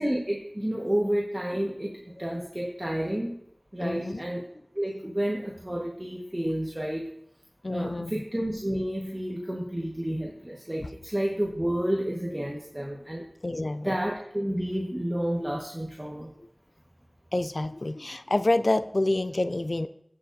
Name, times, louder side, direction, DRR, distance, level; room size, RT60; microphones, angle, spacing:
voice 1, 0.0-3.4 3.7-4.4 4.7-7.1 7.7-16.3, right 1 dB, 25° right, -3 dB, 1.5 m, -30 dB
voice 2, 3.8-4.2 7.6-8.2 13.4-14.0 17.3-19.9, left 2 dB, 65° left, 12 dB, 0.4 m, -27 dB
15.0 x 6.4 x 2.7 m, 0.72 s
wide cardioid pair, 45°, 0 cm